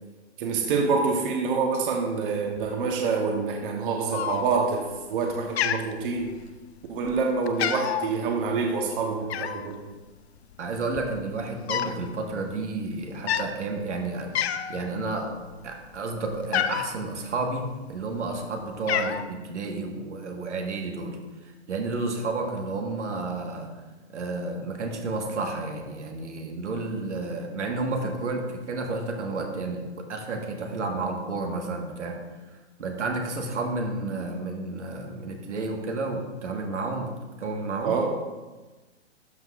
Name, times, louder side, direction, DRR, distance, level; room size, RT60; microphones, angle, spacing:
voice 1, 0.4-6.3 6.9-9.8 37.8-38.1, right 4 dB, 50° right, 2 dB, 1.1 m, -26 dB
Cat, 4.1-4.8 5.1-5.3 5.6-6.6 7.0-7.2 7.5-8.1 9.3-9.7 10.5-10.6 10.8-12.0 12.3-12.5 13.1-13.5 14.0-14.1 14.3-14.9 15.3-16.9 17.7-18.3 18.6-19.2, left 10 dB, 65° left, 0.6 m, -28 dB
voice 2, 10.6-15.3 15.6-21.2 21.4-23.7 24.1-32.2 32.8-37.1 37.4-38.0, right 3 dB, 85° right, 2 dB, 1.6 m, -31 dB
12.0 x 5.9 x 2.5 m, 1.2 s
hypercardioid pair, 145°, 35 cm